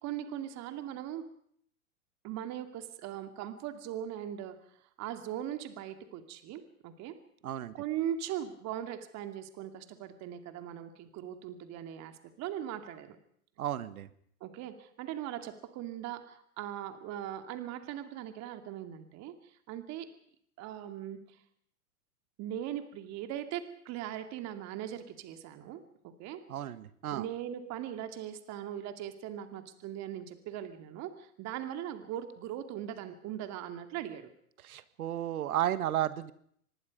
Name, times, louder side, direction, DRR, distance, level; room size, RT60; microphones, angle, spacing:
voice 1, 0.0-1.2 2.2-4.6 5.0-7.1 7.7-13.2 14.4-20.1 20.6-21.4 22.4-26.4 27.1-34.3, right 11 dB, 35° right, 8 dB, 2.3 m, -40 dB
voice 2, 7.4-7.7 13.6-14.1 26.5-27.2 34.6-36.3, right 12 dB, 75° right, 14 dB, 1.6 m, -33 dB
25.0 x 20.5 x 5.3 m, 0.66 s
hypercardioid pair, 120°, 44 cm